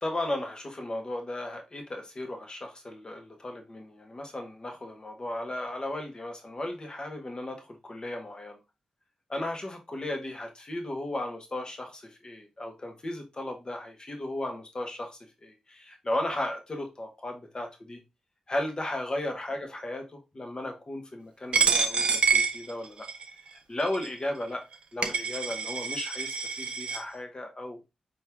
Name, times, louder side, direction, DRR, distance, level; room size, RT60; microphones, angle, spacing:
voice 1, 0.0-8.6 9.3-18.0 18.5-23.1 23.7-24.6 24.9-27.8, left 1 dB, 40° left, 1.4 m, -35 dB
Coin (dropping), 21.5-23.3 23.9-24.1 24.7-24.8 25.0-27.0, right 5 dB, 60° right, 0.9 m, -27 dB
4.5 x 3.1 x 3.5 m
supercardioid pair, 45°, 2 cm